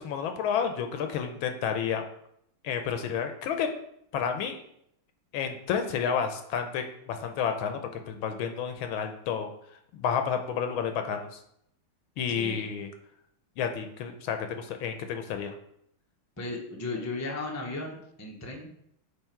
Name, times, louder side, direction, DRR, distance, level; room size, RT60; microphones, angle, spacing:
voice 1, 0.0-2.0 2.6-3.7 4.1-4.6 5.3-7.8 8.1-9.5 9.9-11.3 12.2-12.9 13.6-15.6, left 7 dB, 80° left, 6 dB, 1.5 m, -30 dB
voice 2, 12.4-12.7 16.4-18.7, left 2 dB, 20° left, 0 dB, 0.4 m, -36 dB
8.2 x 3.4 x 4.5 m, 0.72 s
omnidirectional pair, 2.3 m